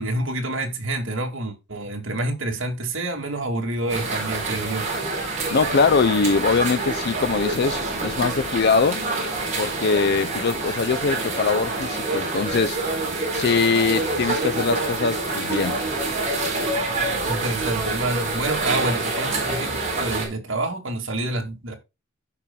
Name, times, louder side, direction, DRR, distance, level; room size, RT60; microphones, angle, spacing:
voice 1, 0.0-4.9 16.8-21.7, right 2 dB, 70° right, 2.3 m, -28 dB
sound 1, 3.9-20.3, right 3 dB, 35° right, 4.1 m, -26 dB
voice 2, 5.5-9.0 9.6-12.8 13.3-15.8, left 5 dB, 55° left, 0.5 m, -22 dB
15.0 x 5.7 x 2.3 m
head